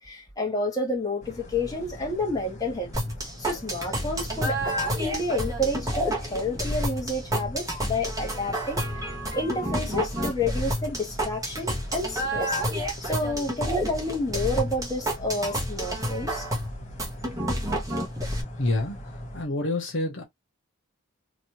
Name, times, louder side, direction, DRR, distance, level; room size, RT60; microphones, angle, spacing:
voice 1, 0.0-2.9 3.4-9.0 9.3-12.6 13.0-16.5, left 1 dB, 15° left, 1.3 m, -30 dB
sound 1, 1.2-19.4, equal, 30° left, 1.1 m, -42 dB
sound 2, 2.9-18.4, equal, 15° right, 1.0 m, -29 dB
voice 2, 18.5-20.2, left 2 dB, 60° left, 0.9 m, -28 dB
3.0 x 2.7 x 2.8 m
head